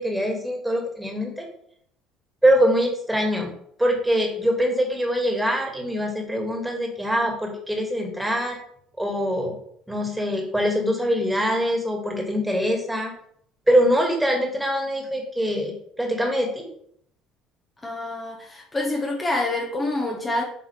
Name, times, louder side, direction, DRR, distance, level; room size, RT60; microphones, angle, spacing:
voice 1, 0.0-1.5 2.4-3.5 3.8-8.6 9.0-9.6 9.9-13.1 13.7-16.7, equal, 5° right, 1 dB, 2.2 m, -23 dB
voice 2, 17.8-20.4, left 2 dB, 20° left, -1 dB, 1.5 m, -27 dB
7.9 x 5.4 x 3.5 m, 0.67 s
figure-of-eight pair, 55°, 0 cm